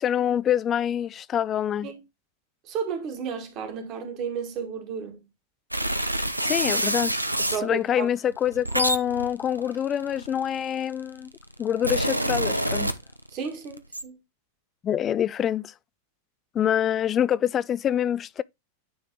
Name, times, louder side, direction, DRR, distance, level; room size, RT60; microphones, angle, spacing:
voice 1, 0.0-1.9 6.4-7.1 7.6-11.3 11.6-12.9 14.8-15.7 16.5-18.4, left 10 dB, 25° left, 0.3 m, -25 dB
voice 2, 2.6-5.2 7.4-8.1 13.3-14.2, right 6 dB, 40° right, 1.8 m, -33 dB
sound 1, 5.7-7.6 8.3-10.7 11.4-13.4 13.7-14.0, right 1 dB, 85° right, 0.6 m, -27 dB
9.6 x 3.4 x 3.6 m
figure-of-eight pair, 90°, 0 cm